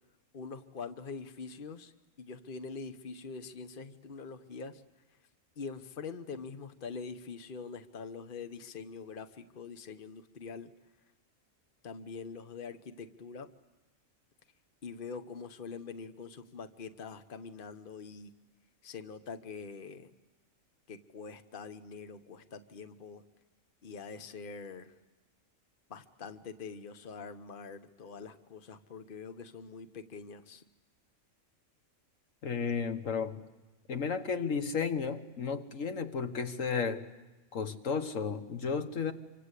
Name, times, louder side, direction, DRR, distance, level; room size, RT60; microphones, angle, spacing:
voice 1, 0.3-1.9 2.2-4.8 5.6-10.7 11.8-13.5 14.8-18.3 18.8-20.1 20.9-23.2 23.8-24.9 25.9-30.6, left 5 dB, 45° left, 1.2 m, -44 dB
voice 2, 32.4-33.4 33.9-37.1 37.5-39.1, left 5 dB, 80° left, 1.7 m, -33 dB
27.0 x 25.0 x 8.3 m
omnidirectional pair, 1.3 m